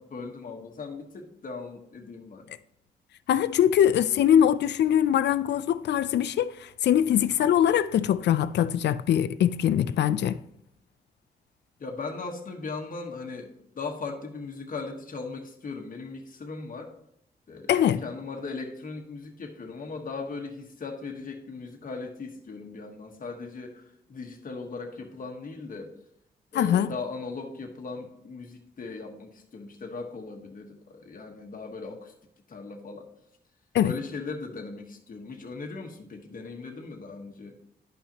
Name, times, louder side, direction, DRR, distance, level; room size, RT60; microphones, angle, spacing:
voice 1, 0.0-2.4 11.8-16.9 17.5-25.9 26.5-32.1 32.5-33.1 33.8-37.6, left 4 dB, 50° left, 1.3 m, -38 dB
voice 2, 3.3-10.4 17.7-18.0 26.5-26.9 33.7-33.9, left 10 dB, 80° left, 0.4 m, -22 dB
11.0 x 5.7 x 2.9 m
cardioid pair, 90°, 18 cm